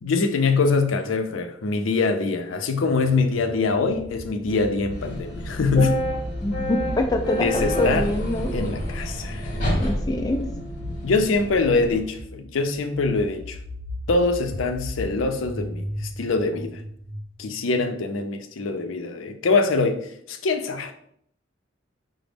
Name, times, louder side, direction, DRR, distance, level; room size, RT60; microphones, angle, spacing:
voice 1, 0.0-6.0 7.4-8.1 8.5-9.4 11.0-13.6 14.1-16.8 17.4-20.9, left 3 dB, 85° left, 6 dB, 0.5 m, -23 dB
sound 1, 3.7-17.4, left 1 dB, 60° right, 0.5 m, -37 dB
sound 2, 4.9-12.0, equal, 45° left, 0.9 m, -29 dB
voice 2, 6.4-8.5 9.8-10.5, left 1 dB, 20° left, 3 dB, 0.3 m, -25 dB
5.0 x 2.1 x 3.3 m, 0.67 s
head